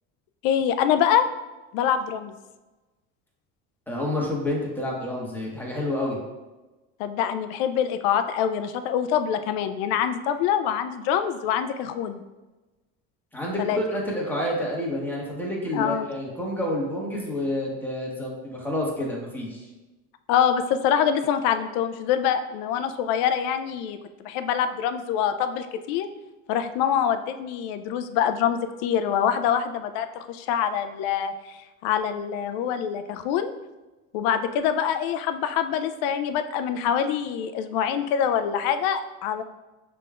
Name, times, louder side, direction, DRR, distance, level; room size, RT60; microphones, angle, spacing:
voice 1, 0.4-1.3 1.7-2.3 7.0-12.2 13.6-13.8 15.7-16.1 20.3-24.0 24.2-26.1 26.5-31.6 31.8-33.5 34.1-39.4, left 8 dB, 80° left, 9 dB, 0.5 m, -25 dB
voice 2, 3.9-6.2 13.3-19.7, left 1 dB, 5° left, -3 dB, 1.2 m, -29 dB
5.9 x 3.5 x 2.4 m, 1.1 s
supercardioid pair, 110°, 33 cm